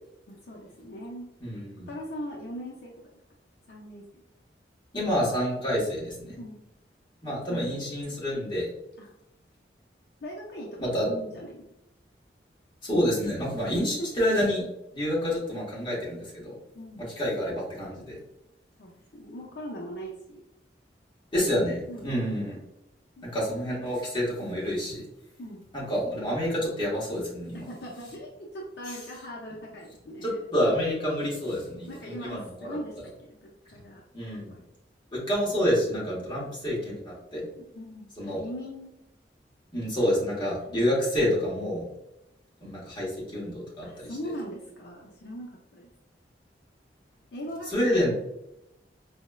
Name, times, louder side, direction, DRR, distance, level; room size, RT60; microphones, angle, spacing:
voice 1, 0.3-1.3 1.9-2.9 3.7-4.0 6.4-6.6 7.4-7.7 9.0-9.1 10.2-11.6 16.7-17.1 18.8-20.4 21.9-22.2 23.2-23.3 25.4-25.7 27.7-30.4 31.9-34.0 34.4-34.6 37.6-38.9 40.0-40.1 43.8-45.9 47.3-48.2, equal, 65° left, -2 dB, 0.5 m, -40 dB
voice 2, 1.4-1.9 4.9-6.4 7.2-8.7 10.8-11.1 12.8-14.6 14.9-16.6 17.0-18.2 21.3-22.6 23.3-25.0 25.7-27.7 28.9-29.0 30.2-32.8 34.1-34.5 35.1-37.4 38.2-38.4 39.7-41.8 42.6-44.1 47.7-48.2, equal, 25° left, -6 dB, 1.1 m, -28 dB
4.0 x 2.0 x 2.2 m, 0.86 s
head